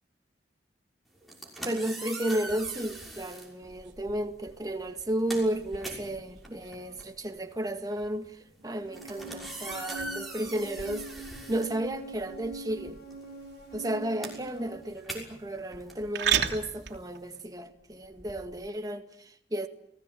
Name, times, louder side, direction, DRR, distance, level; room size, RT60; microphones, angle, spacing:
sound 1, 1.2-3.5 4.4-4.6 4.9-12.4 12.7-17.4, right 1 dB, ahead, 6.1 m, -42 dB
voice 1, 1.6-13.0 13.7-19.7, right 1 dB, 20° right, 2.0 m, -33 dB
sound 2, 3.6-18.7, right 9 dB, 75° right, 3.1 m, -39 dB
sound 3, 8.9-14.8, right 2 dB, 55° left, 6.6 m, -44 dB
30.0 x 19.0 x 9.2 m
head